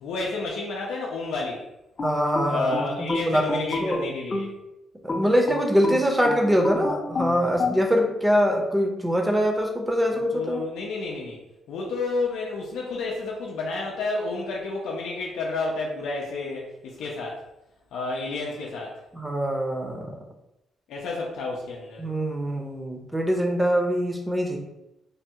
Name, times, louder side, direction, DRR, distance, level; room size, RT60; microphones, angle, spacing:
voice 1, 0.0-1.6 2.5-4.5 10.1-11.4 11.7-17.4 17.9-18.9 20.9-22.1, left 3 dB, 90° left, -3 dB, 0.5 m, -30 dB
sound 1, 2.0-4.6 5.1-7.8, left 3 dB, 35° left, 0.5 m, -29 dB
voice 2, 2.0-4.1 5.0-10.7 19.1-20.2 22.0-24.6, equal, 10° right, 2 dB, 0.6 m, -24 dB
3.3 x 2.3 x 2.7 m, 0.90 s
cardioid pair, 105°, 0 cm